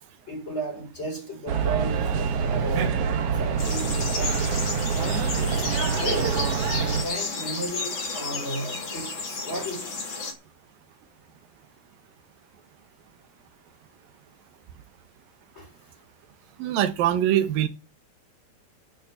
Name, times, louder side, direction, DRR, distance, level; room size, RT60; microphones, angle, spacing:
voice 1, 0.3-4.5 4.9-6.4 6.8-10.0 15.5-15.9, right 1 dB, 15° left, 4.5 m, -34 dB
sound 1, 1.5-7.0, right 6 dB, 55° right, 1.8 m, -25 dB
sound 2, 3.6-10.3, left 4 dB, 35° left, 3.3 m, -32 dB
voice 2, 16.6-17.7, right 11 dB, 80° right, 2.8 m, -23 dB
12.0 x 6.4 x 7.7 m
omnidirectional pair, 4.0 m